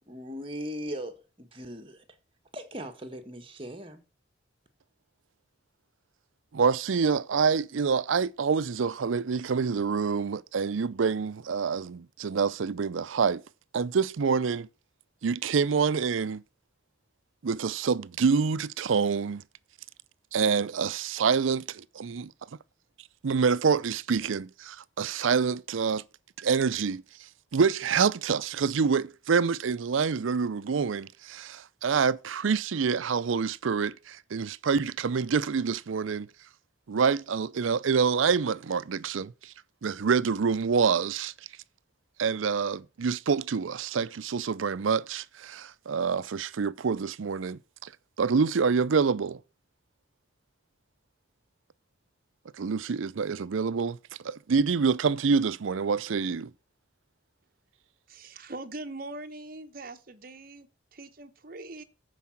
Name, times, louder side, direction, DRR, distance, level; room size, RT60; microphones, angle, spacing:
voice 1, 0.1-2.0 2.5-4.0, equal, 25° right, 1.5 m, -39 dB
voice 2, 6.5-13.4 13.7-14.7 15.2-16.4 17.4-19.4 20.3-22.3 23.2-26.0 26.4-27.0 27.5-36.3 36.9-39.5 39.8-41.3 42.2-47.9 48.2-49.4 52.6-54.0 54.2-56.5, right 5 dB, 85° right, 0.5 m, -26 dB
voice 3, 58.1-61.8, right 2 dB, 50° right, 1.0 m, -42 dB
14.0 x 4.9 x 5.9 m
head